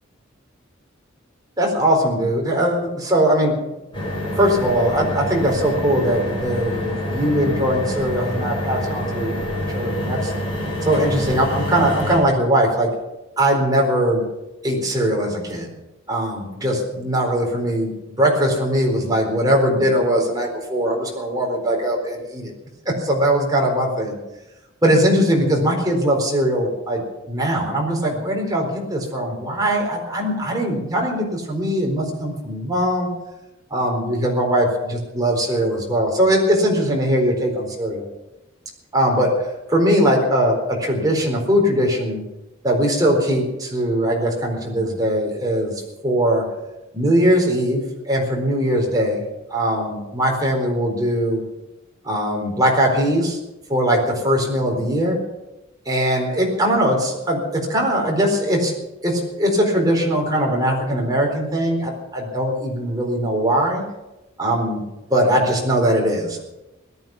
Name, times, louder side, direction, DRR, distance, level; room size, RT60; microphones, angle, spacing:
voice 1, 1.6-3.5 4.4-9.3 9.7-10.3 10.8-12.9 13.4-14.2 14.6-15.7 16.1-17.9 18.2-22.5 22.9-24.2 24.8-33.1 33.7-38.0 38.9-39.3 39.7-42.2 42.6-45.7 46.0-46.4 46.9-49.2 49.5-51.4 52.0-53.4 53.7-55.2 55.9-58.7 59.0-63.8 64.4-64.8 65.1-66.4, equal, 20° right, -1 dB, 4.2 m, -20 dB
sound 1, 3.9-12.2, equal, 25° left, 7.1 m, -26 dB
18.0 x 12.5 x 6.1 m, 0.99 s
head